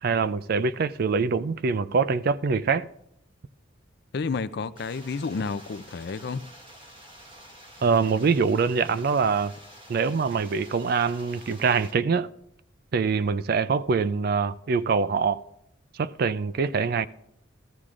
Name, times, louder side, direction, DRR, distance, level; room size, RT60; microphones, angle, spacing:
voice 1, 0.0-2.9 7.8-9.5 9.9-12.3 12.9-15.4 16.0-17.1, right 5 dB, 50° right, 0.3 m, -24 dB
voice 2, 4.1-6.4, left 4 dB, 55° left, 0.4 m, -30 dB
sound 1, 4.8-11.9, equal, 25° right, 1.4 m, -49 dB
14.5 x 13.5 x 2.5 m
head